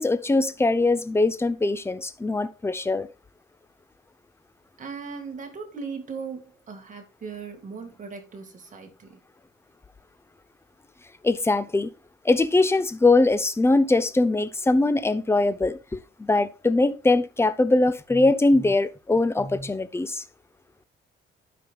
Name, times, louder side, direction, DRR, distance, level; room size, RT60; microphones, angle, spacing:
voice 1, 0.0-3.1 11.2-11.9 12.2-20.2, left 2 dB, 10° left, 0.6 m, -22 dB
voice 2, 4.8-9.2, right 5 dB, 40° right, 2.1 m, -38 dB
12.5 x 5.2 x 2.4 m
cardioid pair, 90°, 20 cm